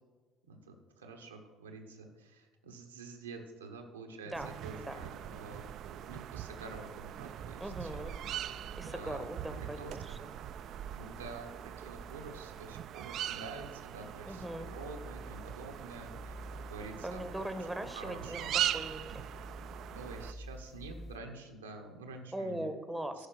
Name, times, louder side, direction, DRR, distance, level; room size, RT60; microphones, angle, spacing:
voice 1, 0.5-8.1 8.9-9.3 9.5-10.2 10.9-17.3 17.9-18.5 19.9-22.7 23.2-23.3, right 3 dB, 90° right, 3 dB, 0.8 m, -48 dB
sound 1, 4.3-20.3, right 11 dB, 60° right, 0.3 m, -41 dB
sound 2, 7.4-21.2, equal, 10° left, 0.7 m, -51 dB
voice 2, 7.6-8.1 8.5-10.3 14.3-14.7 17.0-18.4 18.7-19.2 22.3-23.3, right 1 dB, 5° right, 9 dB, 1.0 m, -40 dB
10.5 x 4.9 x 6.0 m, 1.4 s
hypercardioid pair, 55°, 0 cm